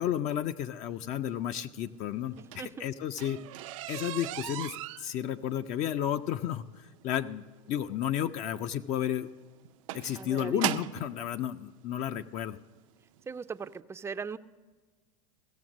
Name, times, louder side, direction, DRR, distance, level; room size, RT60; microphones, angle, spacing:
voice 1, 0.0-3.4 3.9-9.3 9.9-12.6, left 10 dB, 45° left, 10 dB, 0.5 m, -32 dB
sound 1, 2.2-11.1 12.0-12.1 12.7-12.9 13.2-13.3 13.6-13.7, right 15 dB, 70° right, 0.5 m, -38 dB
voice 2, 2.4-2.8 10.1-10.6 13.3-14.4, right 5 dB, 15° right, 12 dB, 0.4 m, -39 dB
16.0 x 7.0 x 6.2 m, 1.4 s
hypercardioid pair, 105°, 17 cm